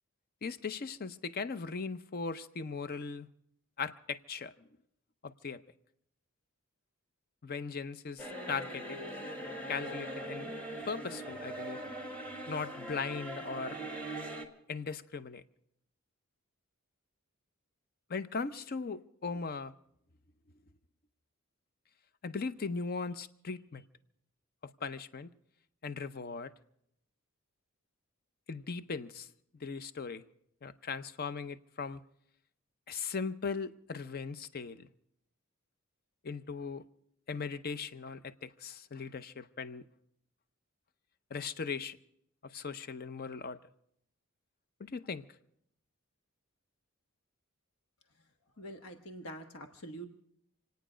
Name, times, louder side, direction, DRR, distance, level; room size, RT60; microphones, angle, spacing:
voice 1, 0.4-3.3 3.8-4.7 5.2-5.6 7.4-9.0 9.7-10.5 10.9-11.8 12.5-13.8 14.7-15.4 18.1-19.7 22.2-23.8 24.8-25.3 25.8-26.5 28.5-29.3 29.5-30.2 30.6-32.0 32.9-34.9 36.2-36.8 37.3-39.9 41.3-42.0 42.4-43.6 44.8-45.2, left 5 dB, 45° left, 0.6 m, -38 dB
sound 1, 8.2-14.5, right 1 dB, 5° left, 1.9 m, -41 dB
voice 2, 48.6-50.1, right 1 dB, 80° left, 1.3 m, -45 dB
28.0 x 9.4 x 5.0 m
head